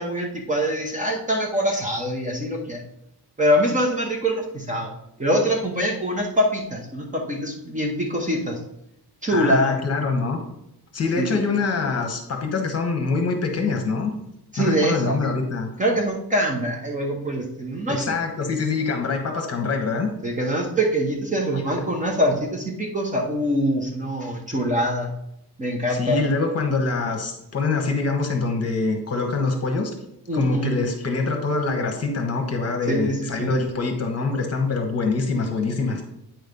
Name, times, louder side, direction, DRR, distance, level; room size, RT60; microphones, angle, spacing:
voice 1, 0.0-2.8 3.4-4.9 5.2-8.6 9.2-9.8 11.2-11.4 14.5-15.2 15.8-18.2 20.2-25.1 25.6-26.2 30.3-30.7 32.9-33.6, equal, 20° right, 0 dB, 0.9 m, -24 dB
voice 2, 9.3-10.4 10.9-14.1 14.6-15.7 17.9-20.1 25.9-29.9 30.3-36.0, left 4 dB, 40° left, 4 dB, 1.2 m, -24 dB
9.1 x 3.1 x 5.3 m, 0.81 s
cardioid pair, 165°, 40 cm